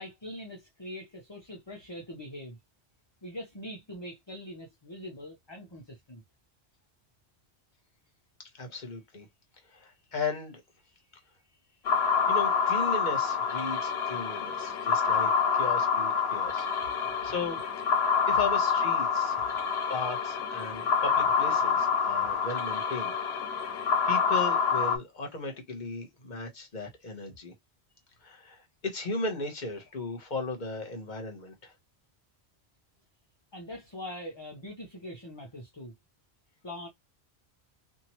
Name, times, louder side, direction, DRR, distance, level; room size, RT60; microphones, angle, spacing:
voice 1, 0.0-2.6 3.2-6.2 33.5-35.9 36.6-36.9, left 1 dB, 30° left, 0.7 m, -42 dB
voice 2, 8.6-9.3 9.7-10.6 12.3-16.7 17.0-17.6 18.3-19.4 19.9-23.1 24.1-27.5 28.2-31.7, left 3 dB, 45° left, 1.1 m, -36 dB
sound 1, 11.9-25.0, left 6 dB, 75° left, 1.0 m, -27 dB
2.9 x 2.6 x 2.8 m
omnidirectional pair, 1.1 m